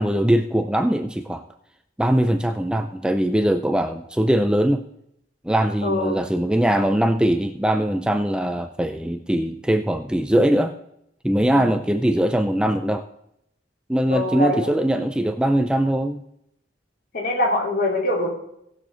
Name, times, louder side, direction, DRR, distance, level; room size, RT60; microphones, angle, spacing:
voice 1, 0.0-1.4 2.0-4.8 5.4-10.7 11.2-13.0 13.9-16.2, right 1 dB, 5° right, 7 dB, 0.5 m, -21 dB
voice 2, 5.8-6.2 11.5-11.8 14.1-14.7 17.1-18.3, left 1 dB, 55° left, -2 dB, 3.6 m, -23 dB
18.5 x 6.8 x 3.8 m, 0.77 s
head